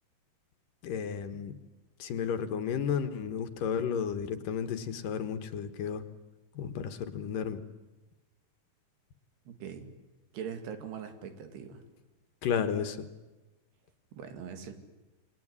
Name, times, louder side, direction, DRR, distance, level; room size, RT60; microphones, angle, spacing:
voice 1, 0.8-1.6 2.0-6.0 6.5-7.6 12.4-13.1, left 7 dB, 65° left, 9 dB, 2.7 m, -32 dB
voice 2, 9.5-9.9 10.3-11.8 14.1-14.7, right 7 dB, 90° right, 7 dB, 4.3 m, -41 dB
27.5 x 22.0 x 9.7 m, 1.1 s
omnidirectional pair, 4.5 m